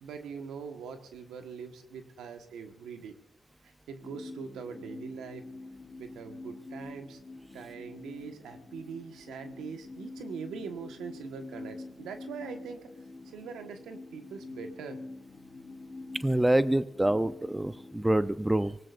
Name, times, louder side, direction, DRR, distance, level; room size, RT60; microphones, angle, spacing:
voice 1, 0.0-3.2 3.6-5.4 6.0-7.2 7.5-12.9 13.2-15.0, right 6 dB, 85° right, 5 dB, 1.4 m, -42 dB
sound 1, 4.0-18.1, left 2 dB, 45° left, 1.7 m, -46 dB
voice 2, 16.2-18.8, right 1 dB, 15° right, 13 dB, 0.6 m, -26 dB
24.5 x 18.5 x 2.6 m, 0.83 s
supercardioid pair, 50°, 0 cm